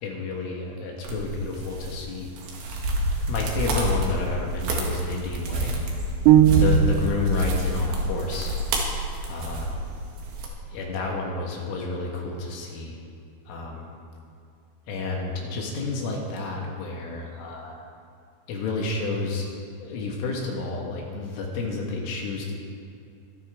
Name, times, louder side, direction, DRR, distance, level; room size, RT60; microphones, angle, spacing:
voice 1, 0.0-2.3 3.3-5.8 6.5-8.6 9.3-9.7 10.7-13.0 13.5-13.9 14.9-17.7 18.5-19.5 19.8-22.5, left 3 dB, 75° left, -1 dB, 4.0 m, -30 dB
sound 1, 1.0-10.5, right 1 dB, 65° right, 3.7 m, -27 dB
sound 2, 6.3-7.3, right 11 dB, 85° right, 3.1 m, -17 dB
25.5 x 11.0 x 3.7 m, 2.5 s
omnidirectional pair, 5.9 m